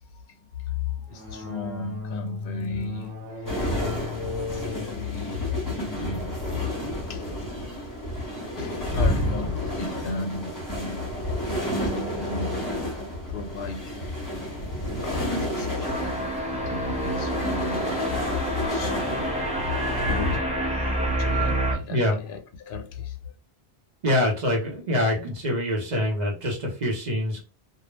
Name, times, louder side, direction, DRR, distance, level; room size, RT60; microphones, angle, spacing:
voice 1, 0.1-7.3 8.6-14.2 14.9-16.2 16.7-23.3, left 6 dB, 60° left, 0.7 m, -35 dB
sound 1, 1.1-9.2, left 4 dB, 70° right, 1.1 m, -38 dB
sound 2, 3.5-20.4, equal, 20° left, 1.2 m, -31 dB
sound 3, 15.8-21.7, equal, 10° right, 0.3 m, -27 dB
voice 2, 21.9-22.2 24.0-27.4, left 1 dB, 45° right, 0.7 m, -25 dB
2.3 x 2.0 x 3.0 m
omnidirectional pair, 1.1 m